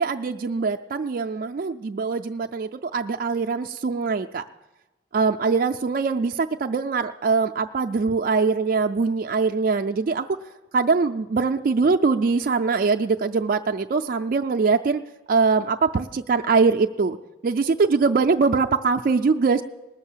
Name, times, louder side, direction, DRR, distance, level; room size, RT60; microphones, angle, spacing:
voice 1, 0.0-4.4 5.1-10.4 10.7-15.0 15.3-17.2 17.4-19.6, right 4 dB, 50° right, 4 dB, 0.4 m, -22 dB
19.0 x 6.8 x 7.2 m, 1.1 s
head